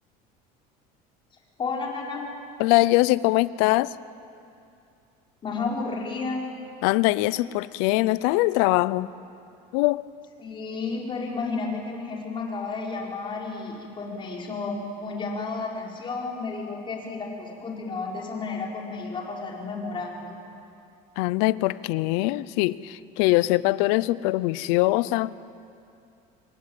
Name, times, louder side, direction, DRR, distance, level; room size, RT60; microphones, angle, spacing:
voice 1, 1.6-2.3 5.4-6.5 10.4-20.3, left 4 dB, 30° left, 4.9 m, -32 dB
voice 2, 2.6-3.9 6.8-9.1 9.7-10.1 21.2-25.4, left 19 dB, 85° left, 0.7 m, -22 dB
26.5 x 22.0 x 9.0 m
cardioid pair, 150°, 18 cm